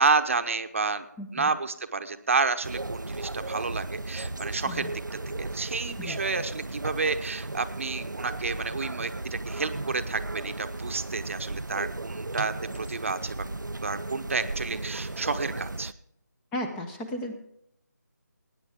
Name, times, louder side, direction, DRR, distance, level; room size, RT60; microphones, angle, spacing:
voice 1, 0.0-1.1 1.3-4.9 5.4-13.3 13.8-15.9, right 4 dB, 45° right, 9 dB, 0.9 m, -30 dB
voice 2, 1.2-1.5 4.7-4.9 6.0-6.2 16.5-17.3, left 1 dB, 5° left, 6 dB, 0.6 m, -34 dB
sound 1, 2.6-15.9, right 2 dB, 85° right, 0.6 m, -35 dB
19.5 x 9.6 x 3.6 m, 0.75 s
figure-of-eight pair, 155°, 10 cm